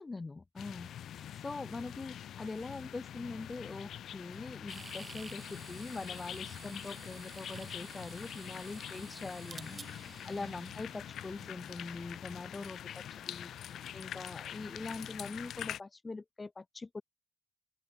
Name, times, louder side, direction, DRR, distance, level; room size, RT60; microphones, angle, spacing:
voice 1, 0.0-17.0, left 3 dB, 25° left, 0.3 m, -43 dB
sound 1, 0.6-15.8, left 10 dB, 70° left, 0.6 m, -45 dB
sound 2, 4.7-11.9, right 4 dB, 30° right, 3.2 m, -51 dB
open air
cardioid pair, 90°, 0 cm